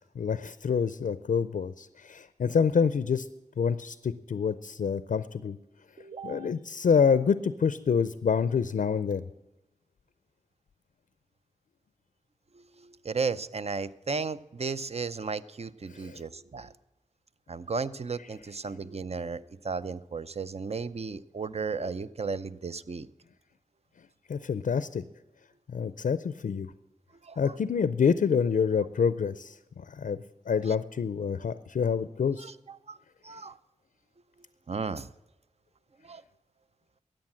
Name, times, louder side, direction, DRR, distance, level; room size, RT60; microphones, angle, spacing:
voice 1, 0.2-3.3 3.6-5.6 6.2-9.3 15.9-16.2 24.3-25.0 25.7-26.7 27.4-32.5, left 6 dB, 80° left, 14 dB, 0.4 m, -27 dB
voice 2, 6.0-6.5 12.8-16.7 17.5-23.1 27.2-27.4 32.4-32.5 32.9-33.0 33.2-33.5 34.7-35.1 36.0-36.2, right 4 dB, 50° right, 14 dB, 0.6 m, -34 dB
13.5 x 8.9 x 7.5 m, 0.96 s
cardioid pair, 40°, 14 cm